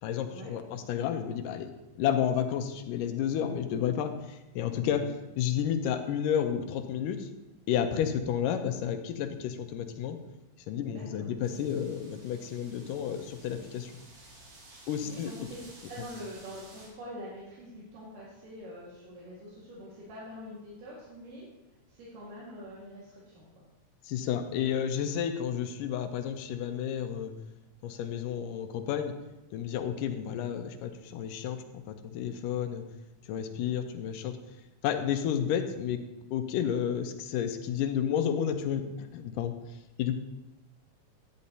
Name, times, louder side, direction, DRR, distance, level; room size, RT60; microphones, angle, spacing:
voice 1, 0.0-1.7 2.0-5.1 5.4-7.3 7.7-10.2 10.7-13.9 14.9-15.3 24.0-27.3 27.8-29.1 29.5-32.8 33.3-34.4 34.8-36.0 36.3-40.1, left 9 dB, 90° left, 7 dB, 2.3 m, -31 dB
voice 2, 10.9-11.3 15.0-15.6 15.9-21.5 21.9-23.6 33.6-33.9, equal, 80° right, -7 dB, 3.4 m, -45 dB
sound 1, 11.4-16.9, right 2 dB, 50° right, 2.8 m, -53 dB
10.5 x 10.0 x 2.7 m, 0.99 s
omnidirectional pair, 3.8 m